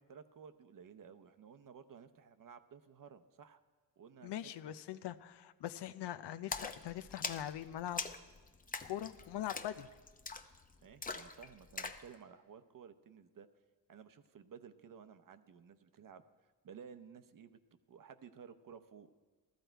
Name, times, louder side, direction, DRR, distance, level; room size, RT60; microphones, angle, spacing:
voice 1, 0.1-3.6 4.0-4.5 10.8-13.5 13.9-16.2 16.6-17.6 17.9-19.1, right 7 dB, 50° right, 10 dB, 0.8 m, -55 dB
voice 2, 4.2-8.0 8.9-9.9, left 12 dB, 80° left, 12 dB, 0.6 m, -42 dB
Splash splatter, 6.5-12.1, left 4 dB, 20° left, 0.6 m, -44 dB
14.0 x 13.0 x 4.5 m, 1.3 s
cardioid pair, 85°, 41 cm